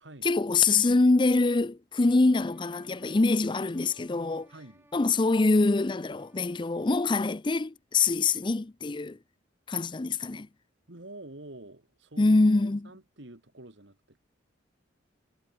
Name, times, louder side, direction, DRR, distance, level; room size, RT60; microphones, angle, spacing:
voice 1, 0.2-4.5 4.9-9.2 9.7-10.5 12.2-12.9, left 3 dB, 25° left, 0.5 m, -24 dB
sound 1, 1.9-7.3, right 1 dB, 10° right, 4.6 m, -62 dB
voice 2, 4.5-4.9 10.9-14.2, right 2 dB, 65° right, 2.4 m, -48 dB
head